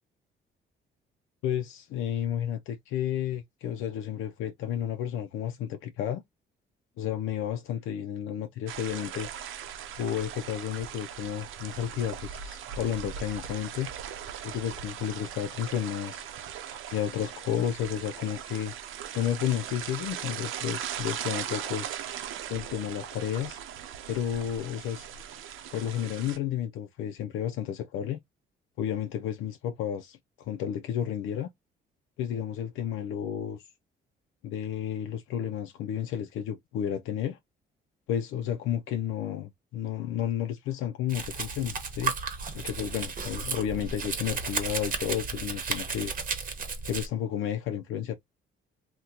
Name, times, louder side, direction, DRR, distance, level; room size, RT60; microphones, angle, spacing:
voice 1, 1.4-6.2 7.0-9.3 10.0-13.9 14.4-16.2 16.9-18.7 19.1-21.9 22.5-23.6 24.1-25.1 25.7-28.2 28.8-31.5 32.2-33.6 34.4-37.4 38.1-42.1 42.5-46.1 46.8-48.1, left 10 dB, 90° left, 0.4 m, -32 dB
sound 1, 8.7-26.4, right 9 dB, 85° right, 0.6 m, -39 dB
Domestic sounds home sounds, 41.1-47.1, right 5 dB, 45° right, 0.9 m, -33 dB
2.8 x 2.2 x 3.7 m
cardioid pair, 90°, 20 cm